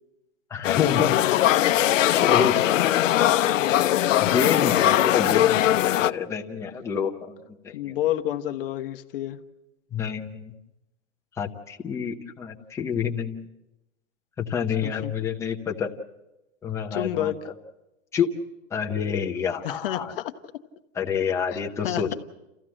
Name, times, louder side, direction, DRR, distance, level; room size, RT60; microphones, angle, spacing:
voice 1, 0.5-1.1 2.1-2.7 4.2-7.4 7.6-8.0 9.9-10.5 11.4-13.4 14.4-15.9 16.6-17.3 18.1-18.3 18.7-20.1 21.0-22.1, left 7 dB, 5° left, 1 dB, 0.8 m, -28 dB
sound 1, 0.6-6.1, left 13 dB, 75° left, 0.7 m, -20 dB
voice 2, 4.2-4.6 7.7-9.4 14.8-15.1 16.9-17.4 19.6-20.3 21.5-21.6 21.8-22.1, left 12 dB, 45° left, 7 dB, 1.2 m, -29 dB
29.5 x 15.0 x 7.7 m, 0.98 s
hypercardioid pair, 160°, 38 cm